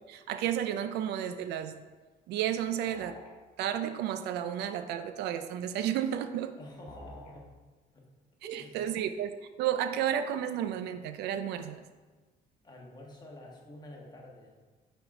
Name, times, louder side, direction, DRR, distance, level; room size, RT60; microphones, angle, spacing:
voice 1, 0.1-1.8 2.3-3.2 3.6-6.6 8.4-11.8, right 10 dB, 80° right, 10 dB, 0.5 m, -32 dB
sound 1, 2.9-3.3 6.9-7.3, left 1 dB, 45° left, 1.9 m, -48 dB
voice 2, 6.6-7.5 7.9-8.1 8.4-8.9 12.6-14.6, left 1 dB, 25° left, -1 dB, 1.5 m, -49 dB
5.7 x 4.4 x 5.2 m, 1.3 s
cardioid pair, 110°, 17 cm